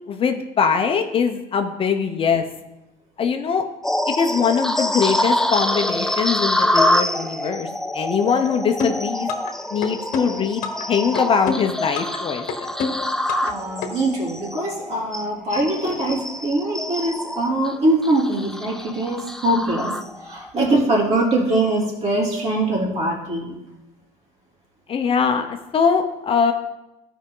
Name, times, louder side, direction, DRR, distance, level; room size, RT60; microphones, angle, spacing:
voice 1, 0.1-2.4 3.2-3.6 4.1-9.3 9.7-12.7 24.9-26.5, left 6 dB, 40° left, 5 dB, 0.8 m, -22 dB
sound 1, 3.8-20.5 20.9-21.2 21.7-21.9, left 1 dB, 5° left, 0.5 m, -26 dB
sound 2, 8.8-9.5 9.8-10.9 11.1-12.2 12.5-13.5 13.8-13.9, left 5 dB, 65° left, 1.2 m, -26 dB
voice 2, 13.4-19.9 20.2-23.5, right 1 dB, 50° right, -3 dB, 3.5 m, -22 dB
13.5 x 5.1 x 3.8 m, 0.94 s
cardioid pair, 100°, 14 cm